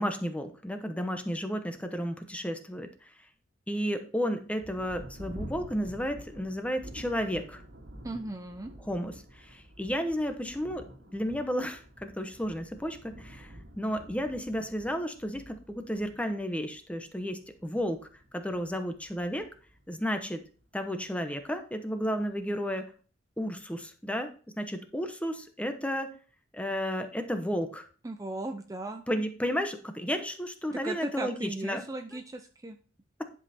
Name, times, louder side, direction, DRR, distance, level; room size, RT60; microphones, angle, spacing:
voice 1, 0.0-3.1 3.7-7.6 8.9-10.8 11.1-18.1 18.3-19.5 19.9-20.4 20.7-22.8 23.4-26.1 26.5-27.9 29.1-31.8, equal, 5° left, 7 dB, 0.9 m, -32 dB
Thunder, 4.6-20.6 21.4-21.5 22.0-22.5, equal, 85° right, 2.0 m, -49 dB
voice 2, 8.0-8.7 28.0-29.0 30.7-32.8, right 2 dB, 20° right, 6 dB, 0.5 m, -37 dB
10.5 x 5.4 x 4.2 m, 0.40 s
head